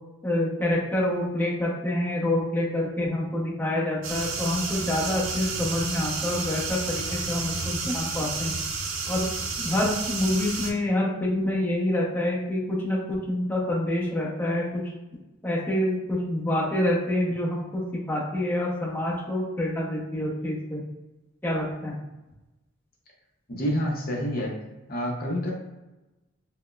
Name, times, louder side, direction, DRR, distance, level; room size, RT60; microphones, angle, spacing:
voice 1, 0.2-8.6 9.1-9.3 9.6-14.8 15.4-17.8 18.1-20.8 21.4-21.9, left 1 dB, 10° left, -6 dB, 0.7 m, -27 dB
sound 1, 4.0-10.7, right 4 dB, 65° right, 0.5 m, -31 dB
voice 2, 23.5-24.5 24.9-25.5, equal, 45° left, -1 dB, 0.6 m, -28 dB
5.9 x 2.1 x 2.3 m, 1.0 s
head